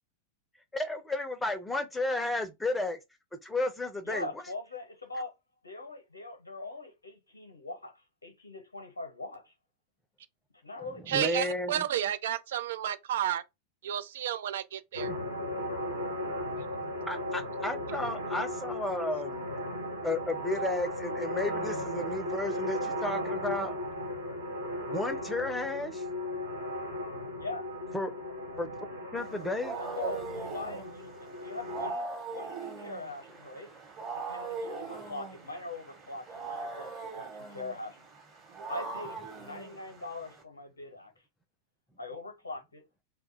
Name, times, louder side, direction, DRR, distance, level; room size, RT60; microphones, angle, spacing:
voice 1, 0.7-3.0 3.4-4.3 11.1-11.8 15.1-15.2 17.1-19.5 20.0-23.7 24.9-26.0 27.9-28.1 28.6-28.7 29.1-29.8, left 2 dB, 5° left, 0.6 m, -33 dB
voice 2, 4.0-5.4 5.6-9.5 10.6-11.0 27.4-27.7 29.7-32.1 32.3-33.7 34.1-38.0 38.7-41.1 42.0-42.8, left 2 dB, 75° left, 0.7 m, -41 dB
voice 3, 11.1-13.4 13.8-15.1, right 11 dB, 60° right, 0.3 m, -31 dB
sound 1, 14.9-31.9, left 1 dB, 85° right, 0.9 m, -36 dB
Wild animals, 29.2-40.4, right 4 dB, 25° right, 1.1 m, -41 dB
2.4 x 2.2 x 4.0 m
figure-of-eight pair, 90°, 0 cm